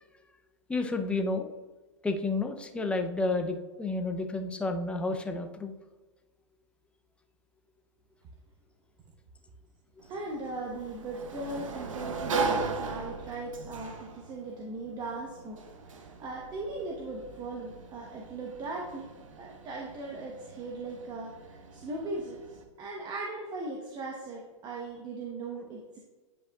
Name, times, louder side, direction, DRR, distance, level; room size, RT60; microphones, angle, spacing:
voice 1, 0.7-1.5 2.0-5.7, left 3 dB, 5° left, 5 dB, 0.5 m, -31 dB
Sliding door, 10.0-22.6, right 4 dB, 85° right, 0.9 m, -38 dB
voice 2, 10.1-15.6 15.9-19.0 19.4-22.4 22.8-26.0, right 2 dB, 25° right, -1 dB, 0.9 m, -38 dB
9.8 x 5.1 x 2.3 m, 1.3 s
hypercardioid pair, 125°, 16 cm